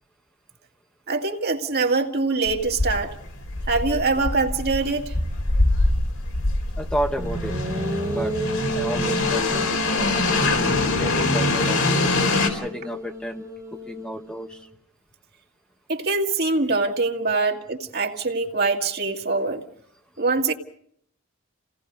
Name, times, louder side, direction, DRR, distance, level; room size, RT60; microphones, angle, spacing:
voice 1, 1.1-3.1 3.7-5.1 15.9-19.6 20.2-20.5, right 3 dB, 50° right, 3 dB, 2.0 m, -23 dB
sound 1, 2.5-12.5, left 2 dB, 75° left, 4.1 m, -24 dB
voice 2, 6.8-7.6 8.1-8.3 8.7-10.2 10.6-13.5 13.7-14.7, equal, 5° left, 4 dB, 1.1 m, -32 dB
sound 2, 7.2-14.6, left 1 dB, 15° right, 1.4 m, -31 dB
30.0 x 17.5 x 5.3 m, 0.67 s
head